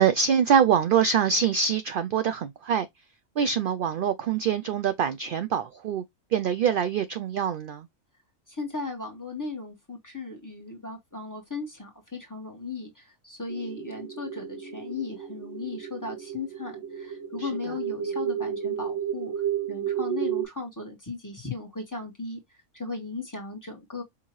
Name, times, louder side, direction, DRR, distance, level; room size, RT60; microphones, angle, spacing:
voice 1, 0.0-2.9 3.4-6.0 6.3-7.9 17.4-17.5, right 7 dB, 65° right, 0.5 m, -24 dB
voice 2, 8.5-19.3 19.7-22.4 22.7-24.0, left 3 dB, 15° left, 1.5 m, -36 dB
sound 1, 13.5-20.4, right 9 dB, 90° right, 2.4 m, -32 dB
5.9 x 2.8 x 3.0 m
omnidirectional pair, 1.4 m